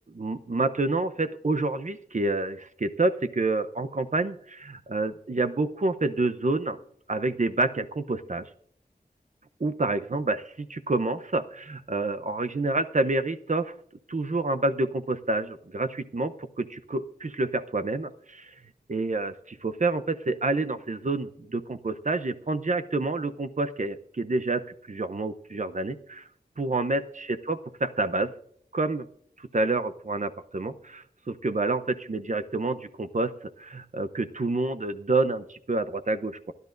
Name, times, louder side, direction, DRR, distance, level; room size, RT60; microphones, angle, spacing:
voice 1, 0.0-6.8 7.1-8.5 9.6-10.4 10.7-13.7 14.1-18.5 18.9-24.6 24.9-26.2 26.6-28.3 28.7-29.1 29.4-36.5, right 2 dB, 50° right, 9 dB, 0.8 m, -28 dB
24.5 x 10.5 x 2.6 m, 0.65 s
wide cardioid pair, 55°, 16 cm